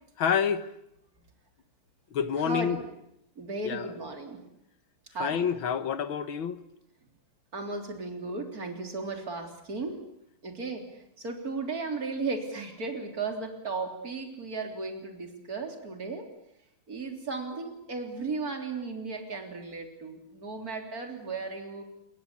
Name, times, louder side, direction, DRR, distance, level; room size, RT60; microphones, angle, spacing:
voice 1, 0.2-0.7 2.1-2.8 3.6-3.9 5.2-6.6, left 7 dB, 65° left, 1.9 m, -28 dB
voice 2, 2.4-2.8 3.4-4.4 5.1-5.5 7.5-10.0 10.4-16.3 16.9-21.8, right 3 dB, 40° right, 4.0 m, -35 dB
27.0 x 22.0 x 8.5 m
omnidirectional pair, 2.4 m